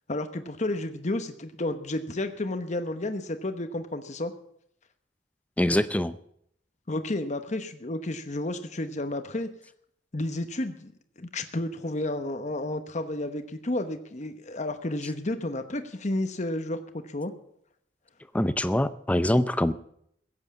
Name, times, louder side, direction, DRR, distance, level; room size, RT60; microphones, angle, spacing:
voice 1, 0.1-4.3 6.9-9.5 10.1-10.9 11.2-17.3, left 1 dB, 40° left, 8 dB, 1.0 m, -31 dB
voice 2, 5.6-6.2 18.3-19.7, left 1 dB, 5° left, 14 dB, 0.5 m, -24 dB
16.0 x 8.1 x 8.4 m, 0.70 s
head